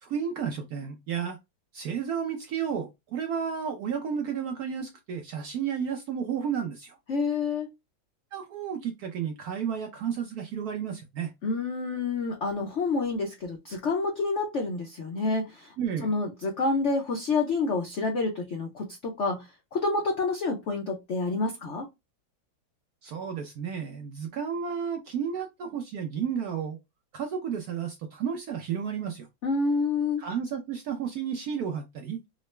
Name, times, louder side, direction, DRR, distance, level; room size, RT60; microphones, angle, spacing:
voice 1, 0.0-1.4 1.7-7.0 8.3-11.3 15.8-16.2 23.0-26.8 27.1-29.3 30.2-32.2, right 7 dB, 70° right, 0.9 m, -32 dB
voice 2, 7.1-7.7 11.4-15.7 16.0-21.9 29.4-30.2, left 3 dB, 75° left, 0.6 m, -28 dB
3.8 x 2.1 x 3.1 m
omnidirectional pair, 2.1 m